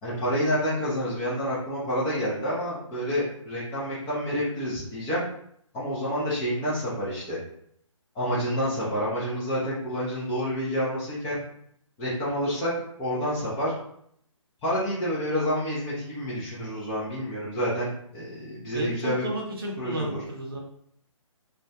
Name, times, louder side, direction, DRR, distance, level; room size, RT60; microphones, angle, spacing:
voice 1, 0.0-5.2 5.7-7.4 8.1-11.4 12.0-12.7 13.0-13.7 14.6-19.2 19.8-20.2, equal, 10° left, -9 dB, 0.4 m, -28 dB
voice 2, 18.7-20.6, right 1 dB, 45° right, -1 dB, 0.7 m, -32 dB
2.2 x 2.2 x 2.7 m, 0.69 s
figure-of-eight pair, 140°, 17 cm